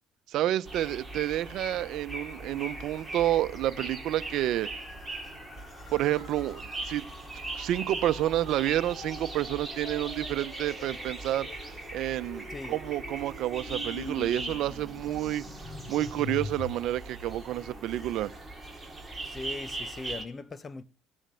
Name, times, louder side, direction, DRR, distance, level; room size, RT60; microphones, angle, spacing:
voice 1, 0.3-4.7 5.9-7.0 7.5-15.4 15.9-18.3, right 13 dB, 65° right, 1.0 m, -29 dB
sound 1, 0.6-20.2, right 2 dB, 5° right, 4.3 m, -40 dB
sound 2, 1.5-17.7, left 4 dB, 50° left, 6.1 m, -46 dB
voice 2, 19.2-20.8, left 3 dB, 25° left, 1.2 m, -39 dB
16.5 x 10.0 x 7.8 m
cardioid pair, 110°, 0 cm